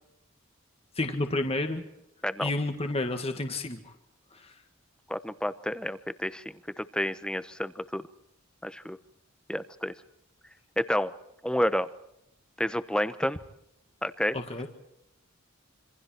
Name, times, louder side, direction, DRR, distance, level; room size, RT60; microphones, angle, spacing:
voice 1, 1.0-1.8 2.4-3.9 4.3-4.5 14.3-14.7, left 2 dB, 30° left, 6 dB, 1.8 m, -30 dB
voice 2, 5.1-8.0 8.6-9.0 9.5-9.9 10.8-11.1 11.4-11.9 12.6-13.4 14.0-14.4, equal, 5° left, 13 dB, 0.9 m, -30 dB
27.0 x 25.5 x 4.5 m, 0.82 s
head